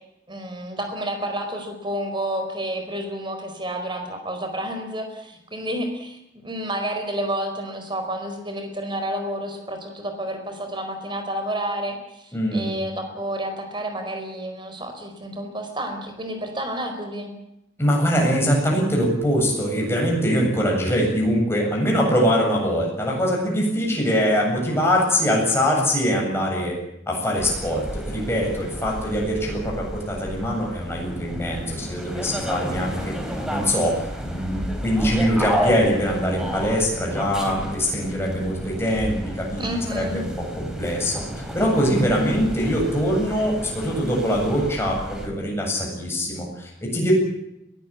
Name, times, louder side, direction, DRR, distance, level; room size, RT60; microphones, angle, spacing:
voice 1, 0.3-17.3 39.6-40.2, right 1 dB, 25° right, 6 dB, 4.6 m, -30 dB
voice 2, 12.3-12.7 17.8-26.7 27.1-33.1 33.5-47.1, equal, 15° left, -2 dB, 7.9 m, -23 dB
sound 1, 27.3-45.3, equal, 5° right, 3.8 m, -32 dB
22.0 x 17.0 x 8.6 m, 0.84 s
head